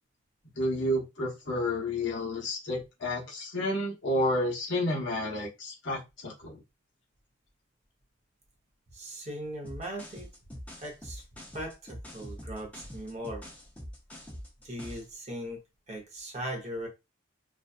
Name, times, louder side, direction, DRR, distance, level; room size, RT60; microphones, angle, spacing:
voice 1, 0.6-6.6, left 1 dB, 60° left, 0.9 m, -30 dB
voice 2, 8.9-10.3 10.8-11.2 11.5-13.4 14.6-15.6 15.9-16.9, equal, 35° right, 0.7 m, -39 dB
sound 1, 9.6-15.1, equal, 5° left, 0.5 m, -44 dB
2.6 x 2.3 x 2.3 m
head